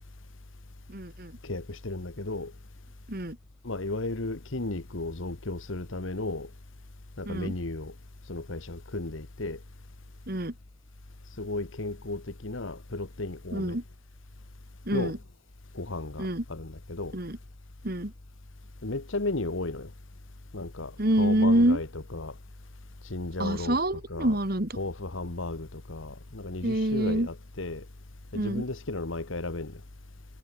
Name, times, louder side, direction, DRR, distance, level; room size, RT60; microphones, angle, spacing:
voice 1, 0.9-1.3 3.1-3.4 7.3-7.5 10.3-10.5 13.5-13.8 14.9-15.2 16.2-16.4 17.1-17.4 17.8-18.1 21.0-21.8 23.4-24.7 26.6-27.3 28.3-28.6, right 1 dB, 45° right, 2.3 m, -26 dB
voice 2, 1.4-2.5 3.6-6.5 7.2-7.9 8.3-9.6 11.4-13.8 14.9-15.2 15.7-17.1 18.8-19.9 20.5-20.9 21.2-22.3 23.1-23.8 24.1-24.4 24.8-27.8 28.3-29.8, left 2 dB, 70° left, 1.4 m, -34 dB
head